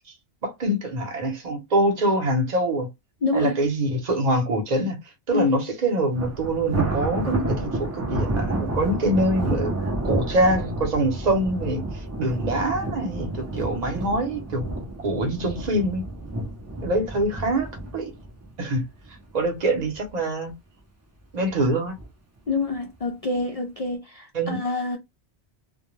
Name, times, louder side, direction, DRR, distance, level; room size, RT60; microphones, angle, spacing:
voice 1, 0.4-2.9 3.3-5.0 5.3-9.7 10.0-11.8 12.2-14.6 15.0-16.0 16.8-17.7 17.9-18.1 18.6-18.8 19.3-20.5 21.3-21.9 24.3-24.6, right 1 dB, 40° right, 0.9 m, -24 dB
voice 2, 3.2-3.6 5.3-5.6 22.5-25.0, left 3 dB, 65° left, 0.3 m, -26 dB
Thunder, 6.1-19.4 19.8-20.1 20.5-20.6 21.5-22.0, right 2 dB, 25° right, 0.3 m, -30 dB
2.2 x 2.2 x 3.0 m
omnidirectional pair, 1.2 m